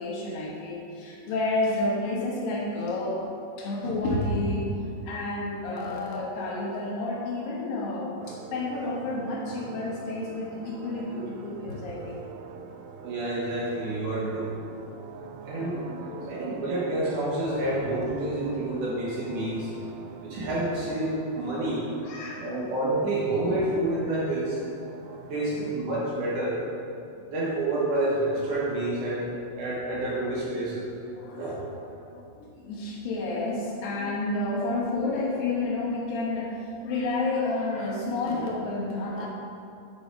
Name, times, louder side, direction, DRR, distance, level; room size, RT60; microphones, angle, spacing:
voice 1, 0.0-3.3 3.6-12.2 12.7-12.8 15.2-16.5 22.0-22.5 25.0-25.3 29.1-29.2 31.1-39.3, left 2 dB, 65° left, -3 dB, 2.8 m, -31 dB
sound 1, 8.2-25.8, right 6 dB, 85° right, 2.7 m, -44 dB
voice 2, 13.0-14.5 15.5-15.8 16.3-19.7 20.2-21.9 22.4-24.6 25.3-26.6 27.3-29.3 29.6-30.9 31.4-31.6, right 1 dB, 60° right, -6 dB, 2.3 m, -28 dB
9.4 x 6.1 x 4.7 m, 2.5 s
omnidirectional pair, 4.9 m